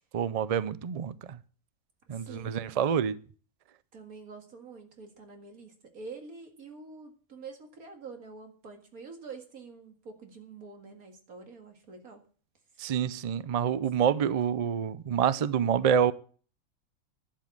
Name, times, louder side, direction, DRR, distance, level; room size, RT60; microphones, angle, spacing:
voice 1, 0.1-1.4 2.1-3.2 12.8-16.1, right 8 dB, 65° right, 0.3 m, -27 dB
voice 2, 2.1-2.8 3.9-12.2, right 4 dB, 90° right, 2.4 m, -46 dB
11.5 x 7.5 x 7.3 m
omnidirectional pair, 1.5 m